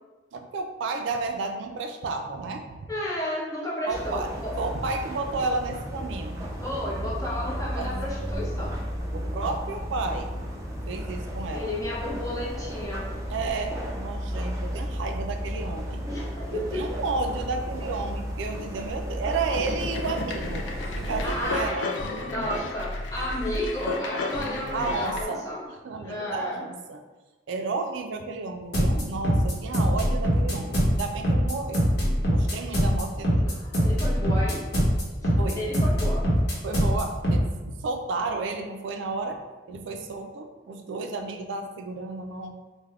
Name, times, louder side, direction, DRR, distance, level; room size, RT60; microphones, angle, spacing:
voice 1, 0.3-2.9 3.8-4.3 4.6-6.4 7.8-8.0 9.1-10.4 10.9-11.7 13.3-16.0 16.5-21.9 24.7-27.0 27.5-31.9 32.3-33.6 35.4-35.7 36.6-39.4 39.7-42.6, right 3 dB, 80° right, 5 dB, 0.3 m, -32 dB
voice 2, 2.9-4.5 6.6-8.8 11.5-13.1 16.1-16.8 21.2-21.8 22.2-25.6 26.0-26.6 33.5-34.6 35.3-36.3, left 1 dB, 15° left, -6 dB, 0.7 m, -32 dB
sound 1, 3.9-21.7, equal, 15° right, 0.4 m, -33 dB
sound 2, 17.3-17.9 19.5-25.2, left 2 dB, 80° left, 0.4 m, -32 dB
sound 3, 28.7-37.4, equal, 60° left, 0.9 m, -22 dB
3.3 x 2.1 x 3.5 m, 1.2 s
head